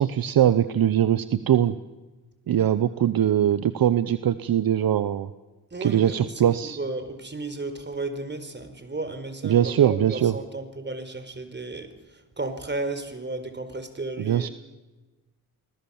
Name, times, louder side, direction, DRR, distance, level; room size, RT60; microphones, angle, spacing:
voice 1, 0.0-1.7 2.5-5.3 5.8-6.8 9.4-10.3 14.3-14.5, right 10 dB, 65° right, 14 dB, 0.9 m, -21 dB
voice 2, 5.7-14.5, right 2 dB, 30° right, 9 dB, 4.6 m, -34 dB
29.5 x 20.0 x 7.2 m, 1.2 s
cardioid pair, 65°, 38 cm